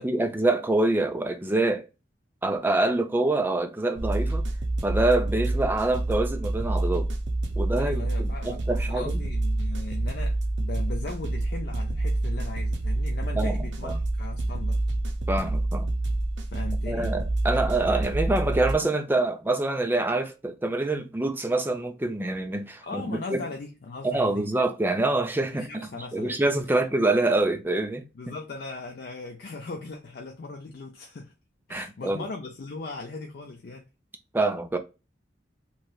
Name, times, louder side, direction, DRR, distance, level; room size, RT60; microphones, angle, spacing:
voice 1, 0.0-1.8 2.4-4.4 4.8-7.1 7.6-9.2 13.4-13.6 13.8-13.9 15.3-15.9 16.9-23.4 24.0-28.0 31.7-32.2 34.3-34.8, right 2 dB, 10° right, 0.4 m, -26 dB
sound 1, 4.0-18.7, right 2 dB, 70° right, 0.6 m, -27 dB
voice 2, 7.8-14.8 16.5-17.2 22.8-24.5 25.5-26.3 26.7-26.8 28.2-31.3 31.7-33.8, left 3 dB, 55° left, 0.5 m, -38 dB
3.1 x 2.8 x 2.3 m
head